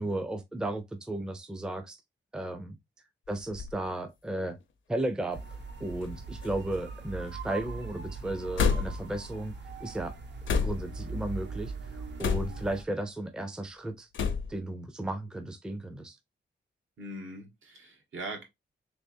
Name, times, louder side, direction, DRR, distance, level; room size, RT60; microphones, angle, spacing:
voice 1, 0.0-2.0 2.3-2.8 3.3-4.6 4.9-5.4 5.8-9.5 9.8-10.1 10.6-14.1 14.5-16.2, right 1 dB, 5° right, 0.4 m, -34 dB
sound 1, 3.3-3.8 4.6-4.7 5.9-6.2 6.4-7.0 8.5-9.1 10.5-11.0 12.2-12.7 14.1-14.6, left 6 dB, 80° left, 0.6 m, -29 dB
sound 2, 5.3-12.8, right 3 dB, 60° right, 0.7 m, -40 dB
voice 2, 17.0-18.4, right 1 dB, 80° right, 1.4 m, -41 dB
3.4 x 3.3 x 2.6 m
wide cardioid pair, 165°, 20 cm